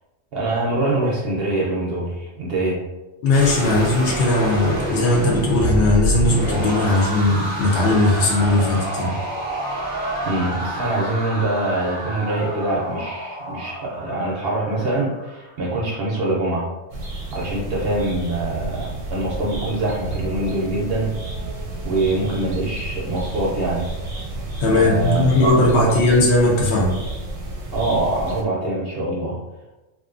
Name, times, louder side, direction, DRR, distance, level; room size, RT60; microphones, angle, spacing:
voice 1, 0.3-2.9 10.2-16.7 17.3-21.2 21.8-23.9 24.7-26.0 27.7-29.4, right 2 dB, 60° right, -4 dB, 0.7 m, -24 dB
voice 2, 3.2-9.2 24.6-27.0, left 2 dB, 65° left, -3 dB, 0.8 m, -18 dB
sound 1, 3.3-15.4, right 1 dB, 15° left, 0.3 m, -28 dB
sound 2, 16.9-28.4, right 2 dB, 85° right, 1.0 m, -31 dB
2.4 x 2.2 x 2.4 m, 1.0 s
omnidirectional pair, 1.3 m